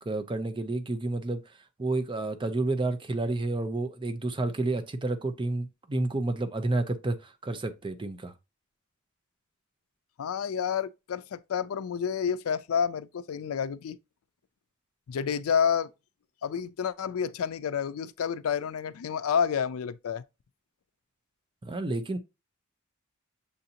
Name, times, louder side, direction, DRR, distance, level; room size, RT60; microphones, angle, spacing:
voice 1, 0.1-1.4 1.8-7.2 7.4-8.3 21.6-22.2, right 2 dB, 25° right, 0.5 m, -30 dB
voice 2, 10.2-14.0 15.1-15.9 16.4-20.2, left 7 dB, 85° left, 0.4 m, -29 dB
6.9 x 2.6 x 2.8 m
head